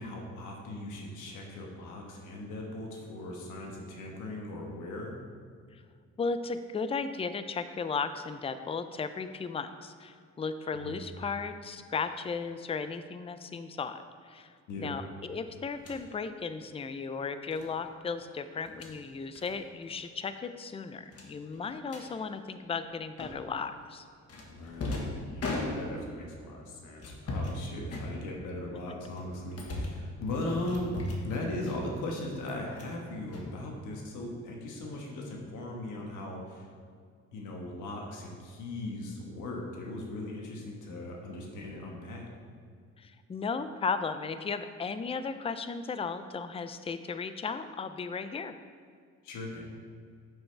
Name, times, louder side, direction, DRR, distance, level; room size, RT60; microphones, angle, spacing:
voice 1, 0.0-5.2 10.7-11.0 14.7-15.0 24.5-31.0 31.2-36.7 37.3-42.3 49.2-49.7, left 1 dB, 85° left, 0 dB, 1.4 m, -38 dB
voice 2, 6.2-24.1 43.0-48.5, left 5 dB, 20° left, 10 dB, 0.4 m, -35 dB
sound 1, 15.7-16.0 17.5-17.7 18.6-18.9 19.3-19.5 19.8-20.0 20.3-20.4 21.1-22.1 23.2-23.6 24.3-26.2 27.0-27.6 27.9-28.6 29.1-30.1 30.7-31.3 31.6-32.1 32.4-33.0 33.3-34.1, left 2 dB, 55° left, 1.5 m, -37 dB
8.7 x 7.2 x 3.3 m, 2.1 s
cardioid pair, 90°, 30 cm